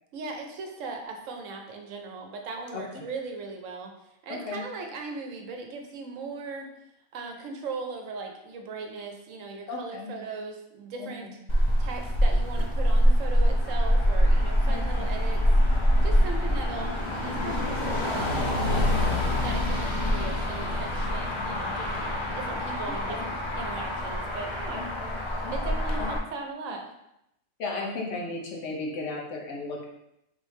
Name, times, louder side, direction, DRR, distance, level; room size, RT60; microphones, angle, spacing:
voice 1, 0.1-3.9 4.2-6.7 7.1-11.3 11.8-15.4 16.0-19.0 19.4-22.1 22.3-24.9 25.5-26.9, right 3 dB, 75° right, 3 dB, 1.0 m, -38 dB
voice 2, 2.7-3.0 4.3-4.6 9.7-10.1 11.0-11.3 14.7-15.1 23.1-23.3 24.7-25.1 25.4-26.1 27.6-29.9, left 3 dB, 70° left, -1 dB, 1.1 m, -35 dB
Motor vehicle (road), 11.5-26.2, equal, 50° left, 0.3 m, -25 dB
3.8 x 3.2 x 3.1 m, 0.81 s
omnidirectional pair, 1.3 m